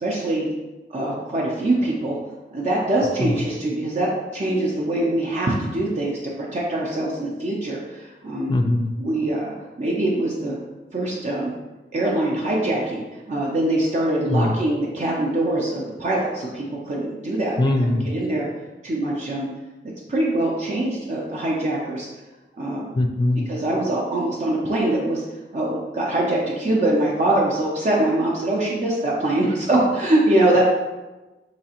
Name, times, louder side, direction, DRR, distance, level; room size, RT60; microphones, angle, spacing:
voice 1, 0.0-0.5 0.9-2.2 2.5-8.5 9.0-10.6 10.9-11.5 11.9-17.6 17.9-18.5 18.8-19.5 20.1-22.1 22.6-22.9 23.5-25.2 25.5-30.6, right 1 dB, 40° right, -3 dB, 0.5 m, -23 dB
voice 2, 8.5-8.9 14.3-14.5 17.6-18.0 22.9-23.5, left 1 dB, 25° left, 5 dB, 0.3 m, -20 dB
4.1 x 2.8 x 2.8 m, 1.1 s
head